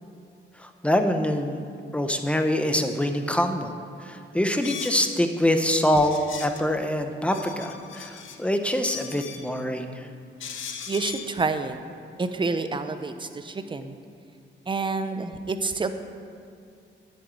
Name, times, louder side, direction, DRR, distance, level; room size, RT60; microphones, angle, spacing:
voice 1, 0.6-1.6 1.9-3.7 4.0-10.1, left 1 dB, 5° left, 5 dB, 0.9 m, -25 dB
sound 1, 4.6-5.1 6.0-6.6 7.1-8.4 8.7-9.5 10.4-11.3, left 7 dB, 80° left, 1.0 m, -38 dB
voice 2, 10.9-11.8 12.2-14.0 14.7-15.9, right 4 dB, 25° right, 9 dB, 0.7 m, -28 dB
10.0 x 7.8 x 8.9 m, 2.5 s
wide cardioid pair, 140°, 20 cm